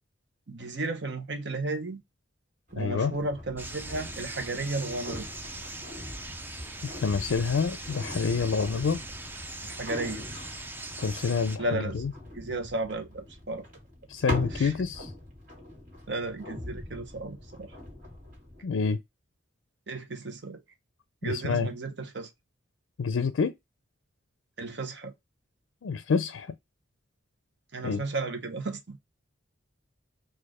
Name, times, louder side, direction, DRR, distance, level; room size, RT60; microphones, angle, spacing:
voice 1, 0.5-2.0 2.7-5.3 9.6-10.2 11.6-12.0 12.3-13.7 14.3-14.7 16.1-17.7 19.9-20.6 21.2-22.3 24.6-25.1 27.7-29.0, right 2 dB, 60° right, 0.9 m, -34 dB
sound 1, 2.7-18.6, left 1 dB, 40° right, 1.9 m, -41 dB
voice 2, 2.8-3.1 6.8-9.0 11.0-12.1 14.1-15.1 18.6-19.0 21.2-21.7 23.0-23.5 25.8-26.5 27.8-28.0, left 5 dB, 85° left, 0.4 m, -27 dB
sound 2, 3.6-11.6, right 2 dB, 10° right, 0.3 m, -40 dB
4.2 x 2.5 x 4.7 m
head